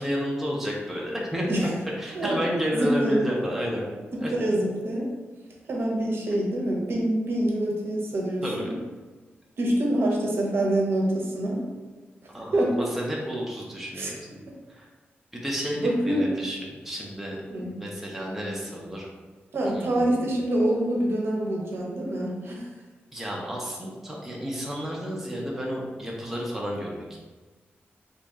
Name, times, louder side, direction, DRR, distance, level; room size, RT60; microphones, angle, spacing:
voice 1, 0.0-1.5 2.0-3.8 4.2-4.3 8.4-8.7 12.3-14.4 14.7-14.9 15.3-17.4 17.8-19.1 19.6-20.2 23.1-27.2, equal, 5° right, -3 dB, 0.5 m, -31 dB
voice 2, 2.7-3.2 4.1-5.1 5.7-8.8 9.6-11.6 12.5-12.7 13.9-14.1 15.7-16.3 17.5-17.7 19.5-22.7, right 1 dB, 70° right, -2 dB, 0.7 m, -26 dB
3.0 x 2.7 x 3.4 m, 1.3 s
wide cardioid pair, 175°, 4 cm